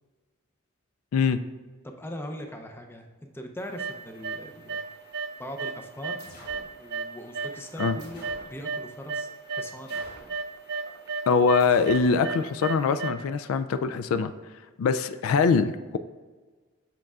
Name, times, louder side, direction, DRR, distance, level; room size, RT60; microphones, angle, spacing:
voice 1, 2.0-4.8 5.4-6.2 6.8-9.9, equal, 10° left, 4 dB, 0.5 m, -40 dB
sound 1, 3.8-4.4 4.7-5.3 5.6-8.8 9.1-13.1, right 4 dB, 50° right, 0.5 m, -33 dB
sound 2, 6.2-6.7 8.0-8.5 9.9-10.4 11.6-12.1, left 1 dB, 50° left, 1.4 m, -47 dB
voice 2, 11.3-14.3 14.8-16.0, left 5 dB, 80° left, 10 dB, 0.3 m, -23 dB
7.7 x 5.9 x 2.4 m, 1.4 s
head